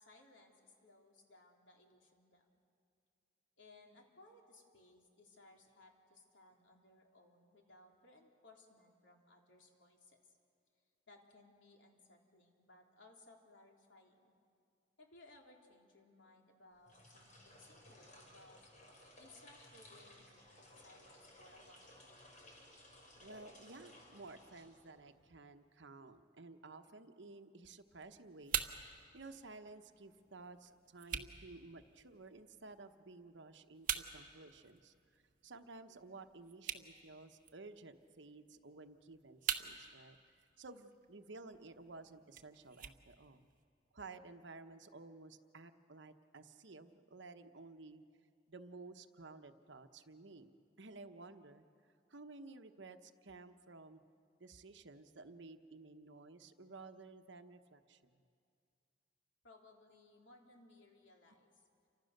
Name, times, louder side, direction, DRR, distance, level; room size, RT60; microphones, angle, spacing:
voice 1, 0.0-2.5 3.6-10.4 11.1-14.3 15.0-18.7 19.2-22.0 59.4-61.6, left 2 dB, 75° left, 1 dB, 3.3 m, -63 dB
sound 1, 16.8-25.2, left 1 dB, 45° left, 5.0 m, -59 dB
voice 2, 23.2-43.5 43.9-48.0 48.5-50.5 50.8-51.6 52.1-54.0 54.4-58.2, right 3 dB, 70° right, 8 dB, 1.1 m, -54 dB
sound 2, 27.6-43.6, right 8 dB, 50° right, 1.3 m, -47 dB
29.0 x 25.0 x 6.6 m, 2.4 s
head